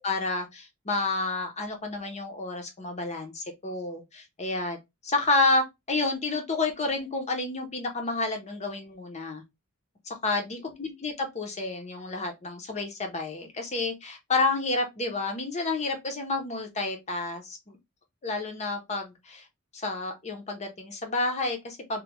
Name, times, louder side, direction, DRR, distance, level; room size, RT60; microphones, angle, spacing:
voice 1, 0.0-4.8 5.0-9.4 10.1-17.8 18.2-19.5 19.7-22.0, left 3 dB, 30° left, 0.7 m, -30 dB
3.0 x 2.2 x 3.4 m
head